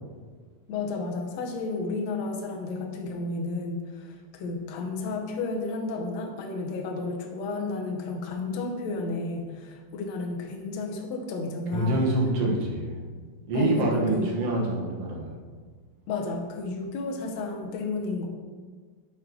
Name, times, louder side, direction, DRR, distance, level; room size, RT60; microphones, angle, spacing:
voice 1, 0.7-12.0 13.5-14.4 16.1-18.3, left 3 dB, 65° left, 2 dB, 1.9 m, -32 dB
voice 2, 11.7-13.0 13.5-15.4, right 1 dB, 55° right, -2 dB, 2.0 m, -26 dB
9.0 x 6.2 x 3.9 m, 1.5 s
omnidirectional pair, 3.9 m